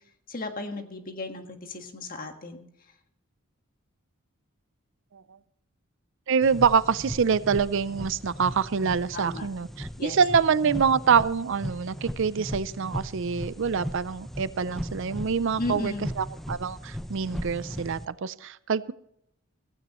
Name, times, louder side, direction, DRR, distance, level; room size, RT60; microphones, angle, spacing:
voice 1, 0.3-2.6 9.1-9.5 10.0-10.2 15.6-16.1, left 2 dB, 40° left, 5 dB, 1.6 m, -35 dB
voice 2, 6.3-18.9, right 6 dB, 60° right, 16 dB, 0.5 m, -25 dB
sound 1, 6.4-18.0, equal, ahead, 0.5 m, -37 dB
16.0 x 15.5 x 3.1 m, 0.75 s
head